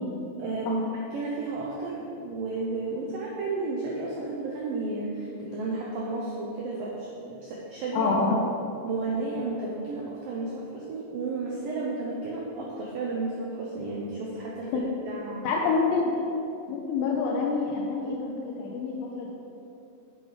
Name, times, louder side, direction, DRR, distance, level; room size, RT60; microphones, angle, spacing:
voice 1, 0.4-0.8 1.1-8.1 8.8-15.5, right 3 dB, 80° right, -3 dB, 2.0 m, -32 dB
voice 2, 7.9-8.4 14.7-14.8 15.4-16.1 16.7-19.3, left 4 dB, 80° left, -2 dB, 2.8 m, -27 dB
8.2 x 7.9 x 4.9 m, 2.8 s
omnidirectional pair, 5.2 m